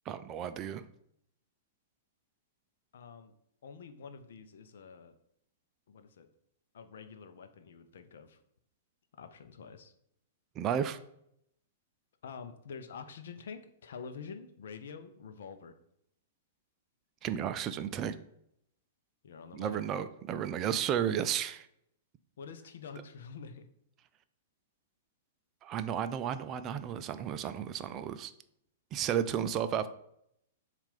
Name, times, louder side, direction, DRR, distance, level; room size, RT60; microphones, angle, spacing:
voice 1, 0.1-0.8 10.6-11.0 17.2-18.1 19.5-21.7 25.6-28.3 28.9-29.9, right 9 dB, 30° right, 11 dB, 0.4 m, -33 dB
voice 2, 2.9-3.3 3.6-5.1 5.9-6.3 6.7-8.4 9.2-9.9 12.2-15.8 19.2-19.8 22.4-23.7, left 5 dB, 60° left, 8 dB, 0.6 m, -47 dB
7.1 x 2.5 x 5.2 m, 0.74 s
figure-of-eight pair, 105°, 0 cm